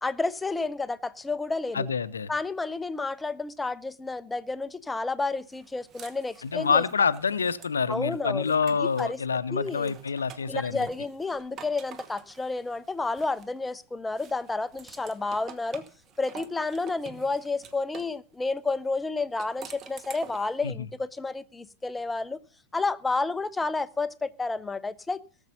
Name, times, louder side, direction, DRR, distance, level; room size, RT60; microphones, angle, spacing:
voice 1, 0.0-1.9 2.3-6.8 7.9-8.5 8.8-9.2 9.5-9.9 10.5-15.8 16.2-22.4 22.7-25.2, left 3 dB, 10° left, 0.6 m, -30 dB
voice 2, 1.7-2.3 6.4-10.9 20.6-20.9, left 5 dB, 70° left, 0.7 m, -27 dB
sound 1, 5.5-9.2 9.6-13.7 14.2-18.2 19.2-20.6, right 7 dB, 30° right, 1.2 m, -48 dB
18.0 x 7.2 x 5.5 m
figure-of-eight pair, 90°, 0 cm